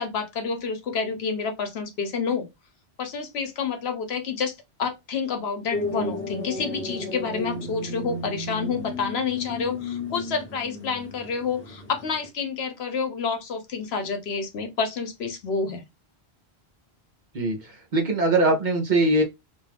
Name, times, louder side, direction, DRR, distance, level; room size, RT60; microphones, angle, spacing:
voice 1, 0.0-2.5 3.0-15.8, left 5 dB, 75° left, 1.0 m, -29 dB
sound 1, 5.7-12.3, left 2 dB, 10° left, 1.0 m, -33 dB
voice 2, 17.3-19.2, right 2 dB, 50° right, 0.8 m, -22 dB
2.6 x 2.3 x 3.3 m
omnidirectional pair, 1.1 m